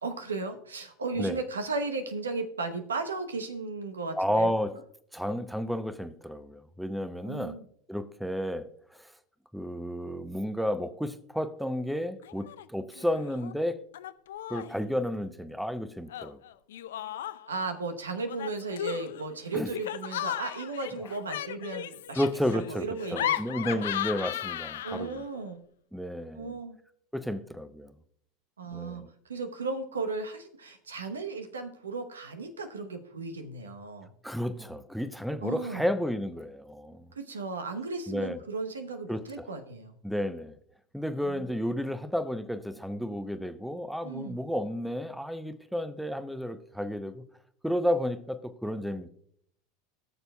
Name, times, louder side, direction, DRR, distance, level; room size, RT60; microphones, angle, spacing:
voice 1, 0.0-4.5 7.2-7.6 17.5-22.2 22.5-23.8 24.8-25.6 26.4-26.8 28.6-34.1 35.4-35.9 37.1-39.9 41.2-41.5 44.0-44.4, right 3 dB, 90° right, 0.9 m, -35 dB
voice 2, 4.2-4.8 5.1-7.6 7.9-8.6 9.0-9.1 9.5-13.8 14.5-16.4 19.5-19.7 22.1-22.9 23.1-25.2 25.9-26.6 27.1-27.9 28.7-29.1 34.2-37.1 38.1-38.4 39.1-39.5 40.0-40.6 40.9-47.2 47.6-49.1, equal, ahead, 0.7 m, -32 dB
Laughter, 12.2-12.7 12.9-13.5 13.9-14.8 16.1-17.6 18.3-25.2, left 12 dB, 75° left, 0.4 m, -36 dB
18.0 x 6.8 x 2.3 m
hypercardioid pair, 85°, 0 cm